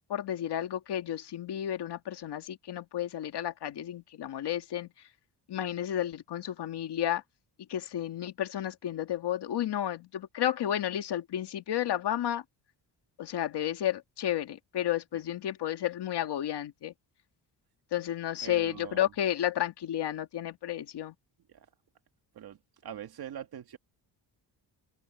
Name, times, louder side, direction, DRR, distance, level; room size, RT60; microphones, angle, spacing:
voice 1, 0.0-4.9 5.5-7.2 7.7-12.4 13.2-16.9 17.9-21.1, left 11 dB, 65° left, 1.9 m, -32 dB
voice 2, 18.4-19.1 21.5-21.7 22.3-23.8, right 9 dB, 55° right, 2.1 m, -43 dB
open air
cardioid pair, 155°, 44 cm